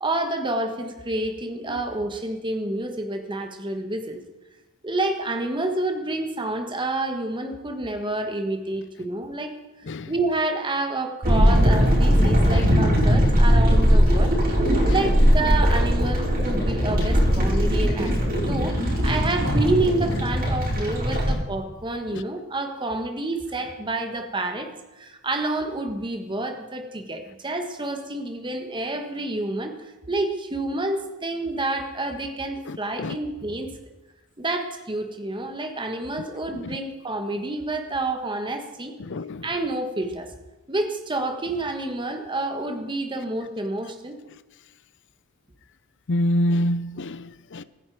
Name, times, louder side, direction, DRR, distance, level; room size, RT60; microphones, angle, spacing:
voice 1, 0.0-4.2 4.8-9.5 10.1-14.4 14.8-29.7 30.1-33.7 34.4-38.9 39.4-40.3 40.7-44.2, right 2 dB, 20° right, 1.4 m, -28 dB
sound 1, 11.2-21.3, equal, 45° right, 4.9 m, -19 dB
voice 2, 32.7-33.2 36.6-36.8 39.0-39.5 46.1-47.6, left 1 dB, 55° left, 0.6 m, -27 dB
23.5 x 9.9 x 4.7 m
head